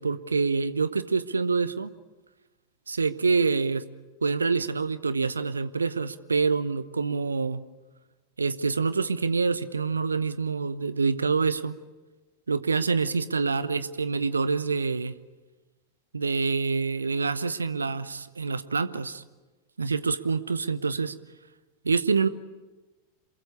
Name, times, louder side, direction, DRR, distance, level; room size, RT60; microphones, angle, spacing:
voice 1, 0.0-1.9 2.9-3.8 4.2-7.6 8.4-11.8 12.5-15.2 16.1-19.2 19.8-21.1 21.8-22.3, right 4 dB, 75° right, 15 dB, 0.9 m, -26 dB
27.5 x 22.0 x 8.4 m, 1.2 s
figure-of-eight pair, 90°, 0 cm